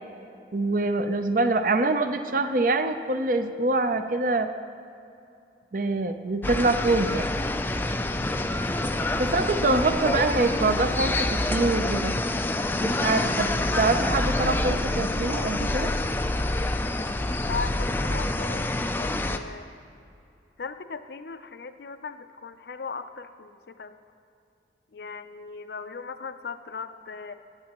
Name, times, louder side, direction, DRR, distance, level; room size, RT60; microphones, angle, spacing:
voice 1, 0.5-4.5 5.7-7.3 9.1-12.2 12.8-13.5 13.8-15.9, right 2 dB, 50° right, 8 dB, 0.5 m, -25 dB
sound 1, 6.4-19.4, left 2 dB, 10° left, 0.3 m, -27 dB
voice 2, 16.5-19.7 20.6-24.0 24.9-27.3, left 5 dB, 70° left, 10 dB, 0.5 m, -38 dB
15.5 x 9.5 x 3.0 m, 2.6 s
head